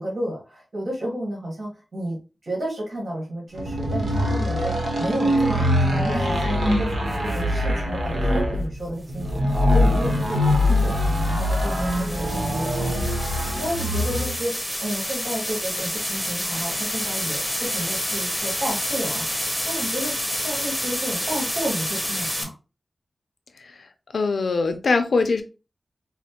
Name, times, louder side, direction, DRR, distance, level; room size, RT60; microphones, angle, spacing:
voice 1, 0.0-2.2 2.4-22.5, right 1 dB, 65° right, -4 dB, 1.5 m, -32 dB
sound 1, 3.6-14.4, left 1 dB, 90° right, 0.9 m, -23 dB
sound 2, 7.1-7.4 9.5-22.4, equal, ahead, 0.9 m, -29 dB
voice 2, 24.1-25.4, left 4 dB, 80° left, 7 dB, 0.5 m, -22 dB
4.1 x 2.1 x 2.9 m, 0.32 s
wide cardioid pair, 60°, 0 cm